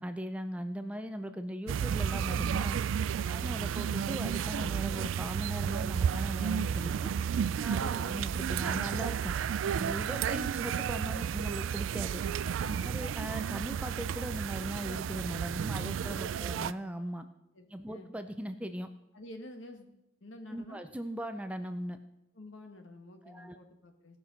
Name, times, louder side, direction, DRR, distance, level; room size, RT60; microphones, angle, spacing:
voice 1, 0.0-2.8 3.3-7.1 7.5-7.8 8.1-9.3 9.7-12.2 12.8-17.3 17.7-18.9 20.5-22.0 23.3-23.6, equal, 5° right, 8 dB, 0.4 m, -39 dB
sound 1, 1.7-16.7, right 8 dB, 80° right, 0.3 m, -32 dB
voice 2, 7.8-8.1 12.6-13.0 16.0-16.5 17.5-18.1 19.1-19.9 20.2-20.8 22.3-24.2, left 1 dB, 75° left, 5 dB, 1.4 m, -49 dB
17.0 x 6.0 x 5.2 m, 0.88 s
head